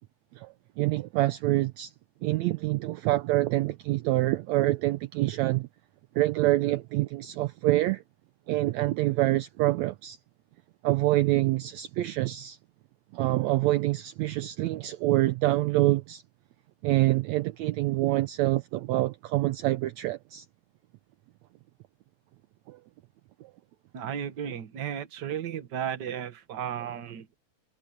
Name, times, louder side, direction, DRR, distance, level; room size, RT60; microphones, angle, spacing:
voice 1, 0.3-1.9 2.2-5.7 6.1-8.0 8.5-10.2 10.8-12.6 13.1-16.2 16.8-20.4 22.7-22.8 23.4-23.5, right 17 dB, 75° right, 1.7 m, -26 dB
voice 2, 23.9-27.4, right 9 dB, 45° right, 1.4 m, -34 dB
omnidirectional pair, 3.7 m